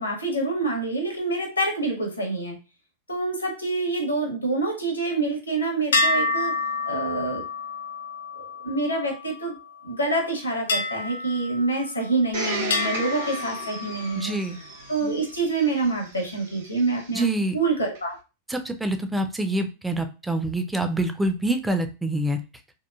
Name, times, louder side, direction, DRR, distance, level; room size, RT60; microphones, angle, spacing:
voice 1, 0.0-2.6 3.1-6.5 6.8-7.4 8.6-9.6 9.8-14.4 14.9-17.2 17.5-18.1, right 3 dB, 85° left, 2 dB, 0.7 m, -26 dB
sound 1, 5.9-9.6 10.7-12.2 12.7-14.4, left 3 dB, 65° left, 0.3 m, -28 dB
Domestic sounds home sounds, 12.3-17.2 17.9-18.0, right 3 dB, 60° right, 0.7 m, -35 dB
voice 2, 14.2-14.6 17.1-17.5 18.5-22.4, right 1 dB, 5° right, 8 dB, 0.4 m, -26 dB
2.8 x 2.3 x 2.3 m, 0.30 s
figure-of-eight pair, 90°, 0 cm